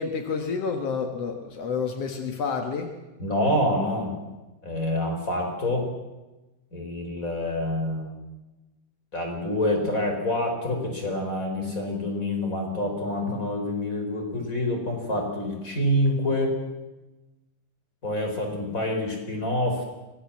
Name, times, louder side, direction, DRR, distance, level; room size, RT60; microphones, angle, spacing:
voice 1, 0.0-2.9, left 5 dB, 70° left, 5 dB, 1.4 m, -29 dB
voice 2, 3.2-4.1 4.6-5.8 6.7-8.1 9.1-16.5 18.0-19.8, left 1 dB, 20° left, 3 dB, 4.3 m, -27 dB
24.0 x 18.0 x 7.4 m, 1.1 s
omnidirectional pair, 5.2 m